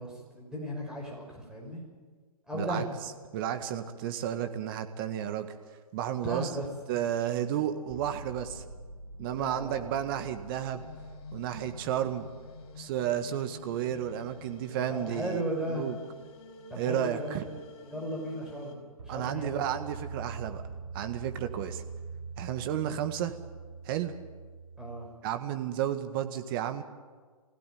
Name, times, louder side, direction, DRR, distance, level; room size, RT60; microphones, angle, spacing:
voice 1, 0.0-1.8 2.5-2.9 6.2-6.7 9.3-9.9 14.9-15.9 16.7-17.6 17.8-19.6 21.5-21.7 24.8-25.1, right 1 dB, 5° right, -2 dB, 6.0 m, -36 dB
voice 2, 2.5-2.8 3.3-5.5 5.9-6.5 6.9-8.6 9.2-10.9 11.3-12.3 12.8-15.4 15.7-16.0 16.8-17.5 19.1-20.6 20.9-21.8 22.4-23.4 23.9-24.1 25.2-26.8, right 10 dB, 35° right, 8 dB, 1.7 m, -32 dB
sound 1, 7.9-15.7 19.0-25.1, right 4 dB, 55° right, 4.4 m, -45 dB
sound 2, 10.7-18.7, left 3 dB, 45° left, 5.0 m, -50 dB
23.0 x 16.5 x 9.4 m, 1.5 s
hypercardioid pair, 135°, 19 cm